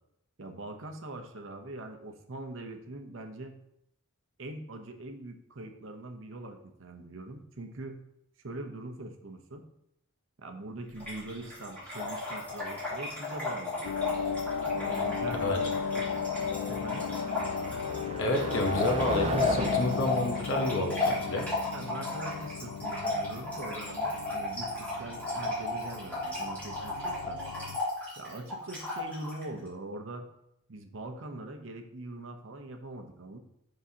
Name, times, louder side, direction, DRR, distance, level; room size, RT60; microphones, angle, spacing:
voice 1, 0.4-3.6 4.4-8.0 8.4-9.6 10.4-13.9 14.6-16.1 16.7-17.1 21.7-27.4 28.2-30.3 30.7-33.4, right 2 dB, 55° right, 5 dB, 0.8 m, -42 dB
Trickle dribble / Fill (with liquid), 11.0-29.4, left 3 dB, 5° left, 2.9 m, -34 dB
Motor vehicle (road), 11.5-21.8, right 3 dB, 25° right, 0.3 m, -41 dB
sound 1, 13.8-27.8, left 6 dB, 80° left, 0.3 m, -36 dB
voice 2, 18.2-21.5, left 1 dB, 55° left, 2 dB, 0.9 m, -29 dB
7.7 x 6.3 x 2.8 m, 0.80 s
head